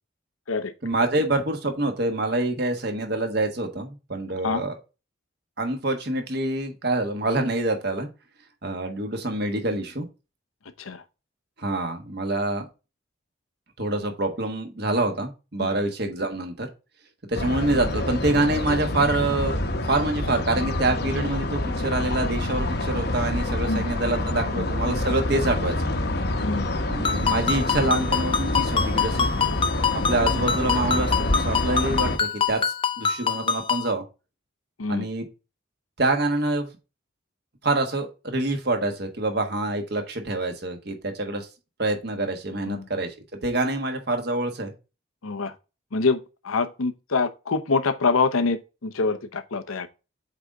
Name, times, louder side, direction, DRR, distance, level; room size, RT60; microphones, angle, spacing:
voice 1, 0.8-4.8 5.6-8.1 8.6-10.1 11.6-12.7 13.8-16.7 17.3-19.6 19.9-25.8 26.9-29.3 29.9-32.6 33.0-34.0 34.9-35.3 36.0-36.7 37.6-41.5 41.8-43.1 43.4-44.7, right 2 dB, 50° right, 1.4 m, -26 dB
sound 1, 17.3-32.2, left 1 dB, 50° left, 0.9 m, -27 dB
voice 2, 26.4-26.7 34.8-35.1 42.7-42.8 45.2-45.5 45.9-46.2 46.4-49.9, left 4 dB, 90° left, 0.8 m, -25 dB
Ringtone, 27.0-33.9, left 6 dB, 25° left, 0.5 m, -26 dB
8.2 x 4.0 x 3.5 m
head